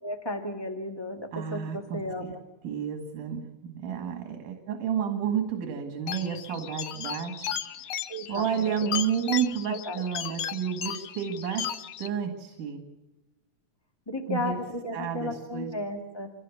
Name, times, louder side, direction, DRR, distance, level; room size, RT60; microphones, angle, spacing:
voice 1, 0.0-2.4 8.1-9.0 9.7-10.0 14.1-16.3, left 1 dB, 15° left, 3 dB, 0.9 m, -34 dB
voice 2, 1.3-2.3 2.6-7.5 8.3-12.8 14.3-14.6 14.9-15.7, right 8 dB, 85° right, 5 dB, 3.4 m, -31 dB
sound 1, 6.1-12.1, left 10 dB, 65° left, 1.8 m, -35 dB
26.5 x 18.0 x 7.1 m, 1.1 s
omnidirectional pair, 3.5 m